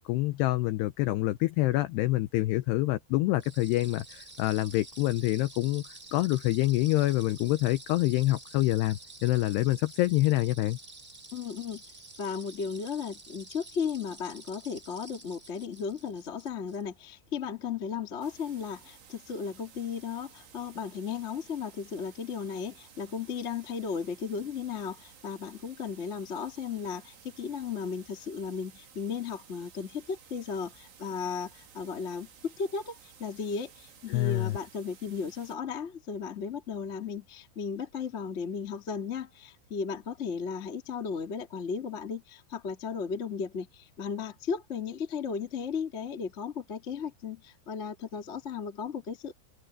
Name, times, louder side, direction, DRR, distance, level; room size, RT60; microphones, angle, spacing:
voice 1, 0.1-5.8 6.1-10.8 34.1-34.6, left 17 dB, 85° left, 2.3 m, -26 dB
sound 1, 3.4-16.8, right 2 dB, 15° right, 2.5 m, -49 dB
voice 2, 11.3-11.8 12.2-49.4, left 6 dB, 40° left, 1.0 m, -35 dB
sound 2, 18.2-35.6, right 7 dB, 70° right, 6.2 m, -55 dB
omnidirectional pair, 5.6 m